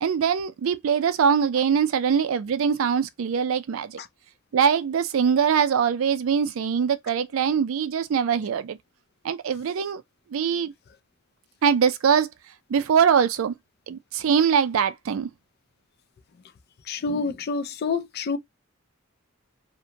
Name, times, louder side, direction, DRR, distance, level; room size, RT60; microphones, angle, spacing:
voice 1, 0.0-4.0 4.5-8.8 9.2-10.0 10.3-10.7 11.6-12.3 12.7-13.5 13.9-15.3, right 7 dB, 75° right, 0.4 m, -22 dB
voice 2, 16.9-18.4, left 4 dB, 50° left, 0.4 m, -27 dB
2.5 x 2.1 x 2.8 m
head